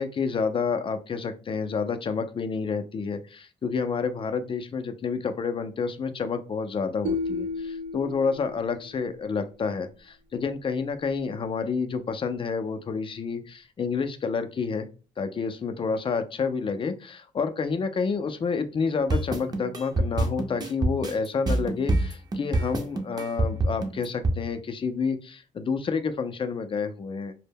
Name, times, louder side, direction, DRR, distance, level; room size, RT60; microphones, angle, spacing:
voice 1, 0.0-14.9 15.2-27.3, left 5 dB, 40° left, 9 dB, 0.4 m, -29 dB
sound 1, 7.0-9.2, left 3 dB, 70° right, 0.4 m, -33 dB
sound 2, 19.1-24.4, right 2 dB, 30° right, 0.6 m, -25 dB
2.1 x 2.0 x 3.3 m, 0.35 s
cardioid pair, 80°, 14 cm